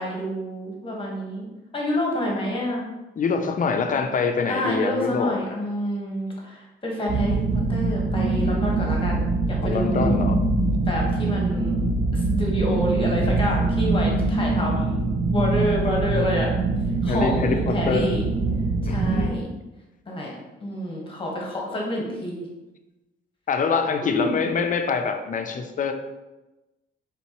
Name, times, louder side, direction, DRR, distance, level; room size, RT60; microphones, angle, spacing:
voice 1, 0.0-1.5 1.7-2.8 4.5-10.1 10.9-11.8 12.1-15.0 15.3-16.5 17.0-18.2 18.8-19.5 20.1-20.3 20.6-22.5 24.0-24.5, equal, 25° left, -2 dB, 1.3 m, -28 dB
voice 2, 3.2-5.4 9.6-10.4 17.1-18.2 18.9-19.3 23.5-25.9, left 5 dB, 40° left, 7 dB, 0.5 m, -25 dB
sound 1, 7.1-19.3, right 3 dB, 45° right, 0.7 m, -23 dB
4.3 x 3.8 x 3.0 m, 1.0 s
cardioid pair, 90°, 20 cm